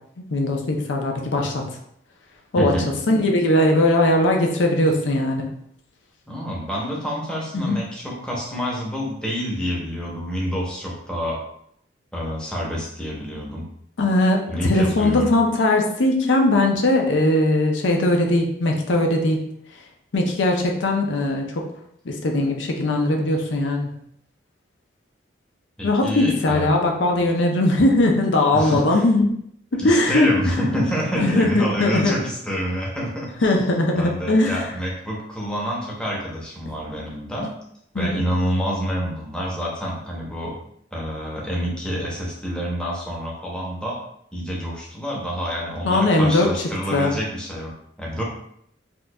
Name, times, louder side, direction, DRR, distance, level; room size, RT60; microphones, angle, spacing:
voice 1, 0.3-1.6 2.5-2.7 3.1-5.5 7.5-7.8 14.0-19.4 20.1-21.6 22.1-23.9 25.8-29.3 29.7-30.3 31.2-32.2 33.4-34.6 38.0-38.1 45.8-46.5 46.9-47.1, left 1 dB, 90° left, 1 dB, 0.6 m, -19 dB
voice 2, 2.6-2.9 6.3-11.4 12.1-13.7 14.5-15.3 25.8-26.8 28.5-29.0 29.8-33.6 34.0-37.5 37.9-40.6 40.9-44.0 44.3-47.7 48.0-48.2, equal, 5° left, -4 dB, 0.7 m, -27 dB
4.3 x 2.5 x 2.3 m, 0.71 s
head